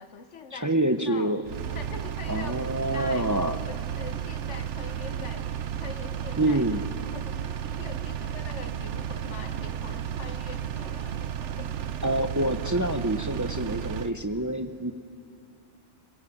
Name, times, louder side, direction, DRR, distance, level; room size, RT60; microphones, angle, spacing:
voice 1, 0.0-0.7 1.1-1.4 1.7-2.6 2.9-3.3 3.7-5.5 5.8-11.8, left 6 dB, 90° left, 10 dB, 1.4 m, -43 dB
voice 2, 0.5-1.4 2.3-3.6 6.4-6.8 12.0-14.9, right 1 dB, 20° right, 8 dB, 0.7 m, -26 dB
Engine, 1.4-14.1, right 9 dB, 90° right, 1.1 m, -33 dB
25.0 x 22.0 x 8.5 m, 2.6 s
omnidirectional pair, 1.2 m